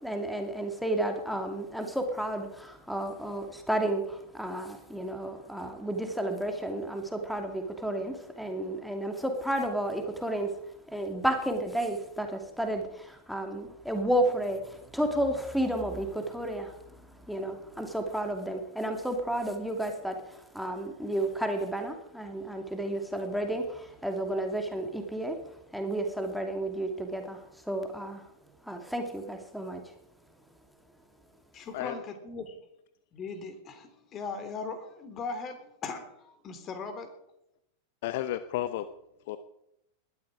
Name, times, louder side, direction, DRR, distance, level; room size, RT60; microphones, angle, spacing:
voice 1, 0.0-10.5 10.9-16.7 17.3-20.2 20.5-25.4 25.7-27.4 27.7-28.2 28.7-29.8, right 1 dB, ahead, 5 dB, 2.6 m, -32 dB
voice 2, 31.5-32.6 33.1-37.1, left 4 dB, 30° left, 9 dB, 3.5 m, -39 dB
voice 3, 38.0-38.9 39.3-39.4, left 13 dB, 50° left, 12 dB, 0.9 m, -32 dB
20.0 x 12.5 x 5.0 m, 0.80 s
figure-of-eight pair, 90°, 0 cm